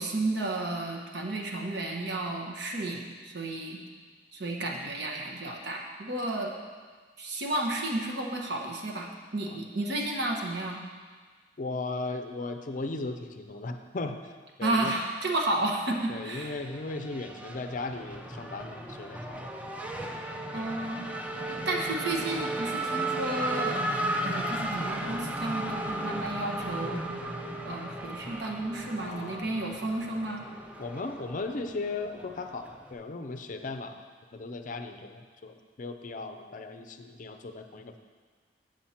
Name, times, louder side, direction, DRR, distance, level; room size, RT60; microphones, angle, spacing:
voice 1, 0.0-3.8 4.3-6.5 7.2-10.8 14.6-16.6 20.5-21.1 21.5-23.8 24.2-27.0 27.6-30.4, right 2 dB, 65° right, 1 dB, 1.1 m, -32 dB
voice 2, 11.6-14.2 14.6-14.9 16.1-19.5 20.5-20.7 29.0-29.6 30.8-34.0 34.3-38.0, left 3 dB, 45° left, 6 dB, 0.5 m, -37 dB
Race car auto racing / Accelerating revving vroom, 16.0-32.9, right 1 dB, 10° right, 0.5 m, -35 dB
7.7 x 7.3 x 4.3 m, 1.5 s
head